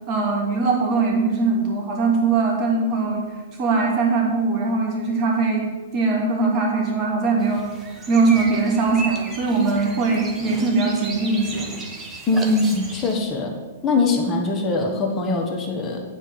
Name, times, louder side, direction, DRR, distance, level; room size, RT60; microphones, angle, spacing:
voice 1, 0.1-3.3 3.6-7.7 8.1-11.7, right 3 dB, 35° right, -1 dB, 2.6 m, -21 dB
sound 1, 7.4-13.1, right 2 dB, 15° right, 1.3 m, -35 dB
voice 2, 12.3-13.5 13.8-16.0, left 3 dB, 20° left, 1 dB, 1.4 m, -22 dB
9.1 x 4.6 x 7.6 m, 1.3 s
hypercardioid pair, 130°, 0 cm